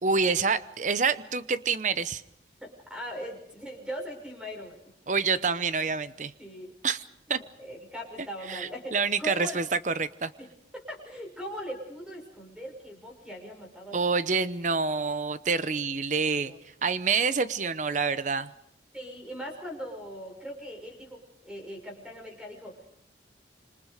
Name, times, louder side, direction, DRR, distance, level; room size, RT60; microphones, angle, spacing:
voice 1, 0.0-2.2 5.1-6.3 6.8-7.0 7.3-7.4 8.5-10.3 13.9-16.5 16.8-18.5, right 5 dB, 45° right, 13 dB, 0.8 m, -27 dB
voice 2, 2.6-4.8 6.4-6.7 7.3-9.6 10.4-10.5 10.7-14.0 16.2-16.6 18.9-22.9, equal, 5° right, 1 dB, 6.0 m, -40 dB
27.0 x 26.0 x 5.1 m, 0.76 s
head